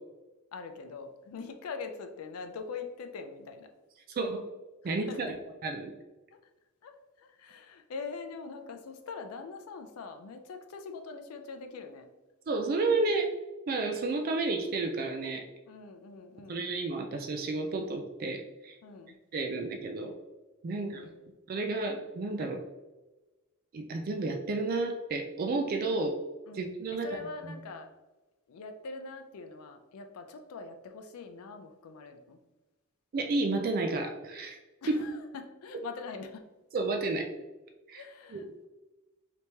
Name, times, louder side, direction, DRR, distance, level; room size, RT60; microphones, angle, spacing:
voice 1, 0.5-3.7 4.8-5.4 6.3-6.4 6.8-6.9 7.2-12.1 15.7-16.7 18.8-19.2 20.7-21.3 25.9-26.1 26.5-27.9 28.5-32.4 34.8-36.5 37.9-38.7, left 4 dB, 90° left, 6 dB, 0.4 m, -43 dB
voice 2, 4.8-5.4 5.6-5.9 12.5-13.3 13.7-15.4 16.5-18.8 19.3-20.1 20.6-21.0 21.5-22.6 23.7-26.1 26.5-27.1 33.1-34.6 34.9-35.0 36.7-37.3 37.9-38.6, right 3 dB, 45° right, 4 dB, 0.3 m, -31 dB
3.4 x 2.9 x 2.8 m, 1.1 s
head